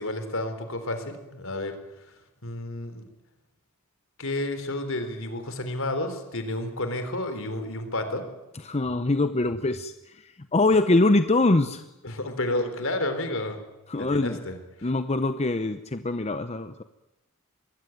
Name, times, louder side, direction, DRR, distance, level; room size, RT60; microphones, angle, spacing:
voice 1, 0.0-1.7 2.4-3.1 4.2-8.2 12.0-13.6 14.0-14.9, left 1 dB, 65° left, 8 dB, 3.9 m, -31 dB
voice 2, 8.6-9.9 10.5-11.8 13.9-14.4 14.8-16.8, left 2 dB, 30° left, 10 dB, 0.8 m, -23 dB
23.5 x 20.5 x 9.3 m, 0.96 s
head